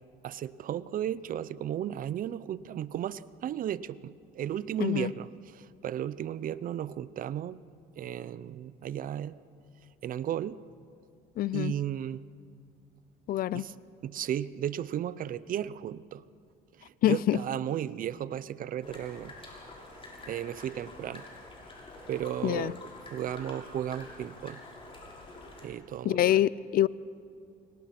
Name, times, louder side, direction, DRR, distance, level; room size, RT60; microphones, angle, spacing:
voice 1, 0.2-7.6 8.0-9.4 10.0-10.6 11.5-12.2 13.5-13.7 14.0-16.2 16.8-19.3 20.3-21.3 22.1-22.8 23.1-24.6 25.6-26.4, right 10 dB, 55° right, 17 dB, 0.7 m, -34 dB
voice 2, 4.8-5.1 11.4-11.7 13.3-13.6 17.0-17.4 22.4-22.7 26.0-26.9, left 13 dB, 60° left, 20 dB, 0.5 m, -25 dB
sound 1, 18.8-25.7, left 2 dB, 35° left, 6.7 m, -47 dB
29.5 x 24.0 x 6.0 m, 2.3 s
cardioid pair, 110°, 17 cm